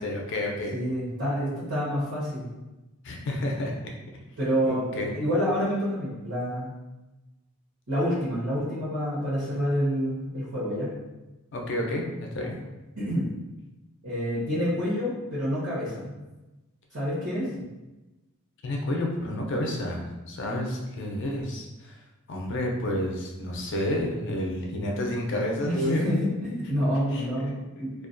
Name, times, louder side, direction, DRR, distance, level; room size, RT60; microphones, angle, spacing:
voice 1, 0.0-0.8 3.0-3.7 4.6-5.1 11.5-12.6 18.6-21.9 22.3-26.1 27.1-27.9, left 1 dB, 55° left, 0 dB, 0.4 m, -30 dB
voice 2, 0.7-2.5 4.4-4.9 5.1-6.8 7.9-10.9 12.4-12.5 13.0-13.2 14.0-16.2 16.9-17.5 25.6-27.9, equal, 65° right, -10 dB, 0.8 m, -28 dB
2.3 x 2.2 x 2.5 m, 1.1 s
head